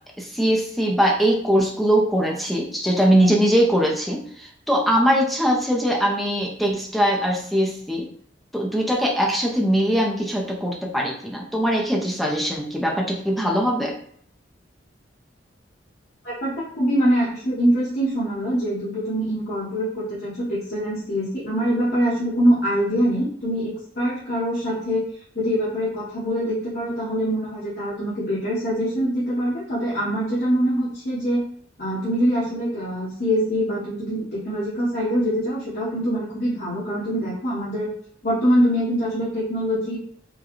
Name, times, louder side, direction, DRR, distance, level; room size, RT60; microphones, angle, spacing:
voice 1, 0.2-8.1 8.5-13.9, equal, ahead, -1 dB, 0.6 m, -21 dB
voice 2, 16.2-25.0 25.3-31.4 31.8-37.9 38.2-40.0, equal, 55° left, -9 dB, 1.1 m, -24 dB
4.6 x 2.2 x 3.0 m, 0.63 s
head